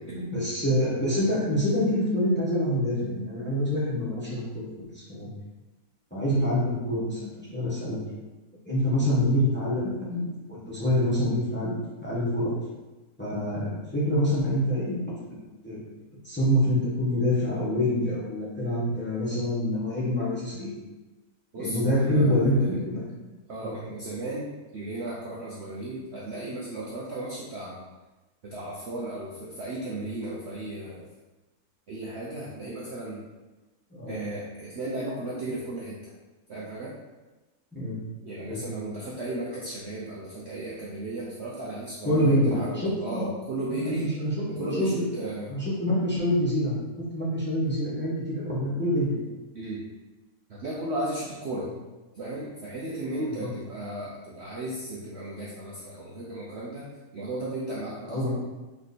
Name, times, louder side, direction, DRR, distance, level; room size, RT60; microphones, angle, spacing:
voice 1, 0.3-5.3 6.1-8.0 8.7-12.5 13.2-15.4 15.6-15.8 16.2-20.7 21.6-23.1 23.6-23.7 33.9-34.2 37.7-38.0 38.4-38.6 42.0-43.3 43.7-44.3 44.6-45.0 45.5-46.8 47.1-49.2 53.4-53.5 58.1-58.3, equal, 10° left, -9 dB, 1.1 m, -26 dB
voice 2, 21.5-22.8 23.5-27.8 28.4-31.0 31.9-33.2 34.1-36.1 36.5-36.9 38.2-42.7 43.0-44.1 44.5-45.5 49.5-49.8 50.5-51.7 52.1-56.9 57.1-58.3, right 1 dB, 55° right, -5 dB, 0.8 m, -35 dB
3.3 x 3.2 x 4.1 m, 1.1 s
omnidirectional pair, 1.6 m